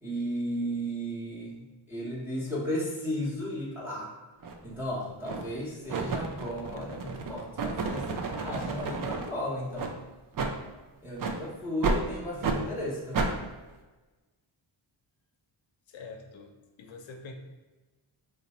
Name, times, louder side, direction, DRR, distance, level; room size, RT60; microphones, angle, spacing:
voice 1, 0.0-4.1 4.6-9.9 11.0-13.4, equal, 5° right, -7 dB, 0.7 m, -34 dB
sound 1, 4.4-4.6 5.2-5.6 5.9-9.3 9.8-9.9 10.3-10.5 11.2-11.4 11.8-12.0 12.4-12.6 13.1-13.3, right 4 dB, 45° right, 0.4 m, -31 dB
voice 2, 15.9-17.3, left 4 dB, 65° left, 4 dB, 0.6 m, -45 dB
3.8 x 2.2 x 4.1 m, 1.2 s
wide cardioid pair, 125°, 49 cm